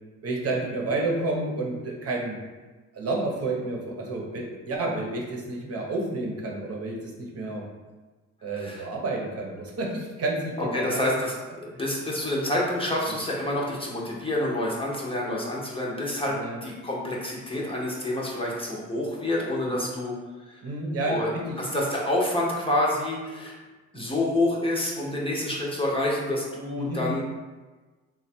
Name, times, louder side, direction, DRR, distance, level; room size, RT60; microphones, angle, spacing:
voice 1, 0.2-2.4 2.9-7.6 8.4-11.1 13.1-13.2 16.3-16.6 19.7-19.9 20.6-21.6 23.9-24.1 26.8-27.1, right 2 dB, 50° right, -1 dB, 0.8 m, -30 dB
voice 2, 8.6-8.9 10.7-11.3 11.6-20.1 20.5-20.6 21.1-21.3 21.6-23.6 23.9-27.2, left 1 dB, 20° left, -4 dB, 0.8 m, -28 dB
3.2 x 2.4 x 4.2 m, 1.3 s
cardioid pair, 90°, 30 cm